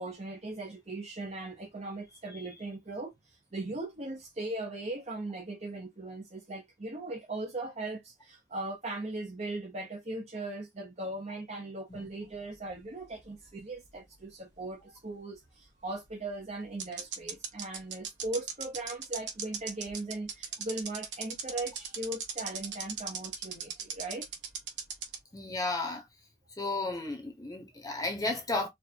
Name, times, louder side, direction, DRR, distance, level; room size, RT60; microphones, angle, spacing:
voice 1, 0.0-24.3, right 2 dB, 40° right, 1.0 m, -39 dB
sound 1, 12.3-13.9 14.1-14.2 16.0-16.1 16.8-25.2, right 7 dB, 80° right, 1.1 m, -37 dB
voice 2, 25.3-26.0 26.6-28.7, left 2 dB, 20° left, 1.0 m, -33 dB
4.6 x 2.6 x 2.9 m
head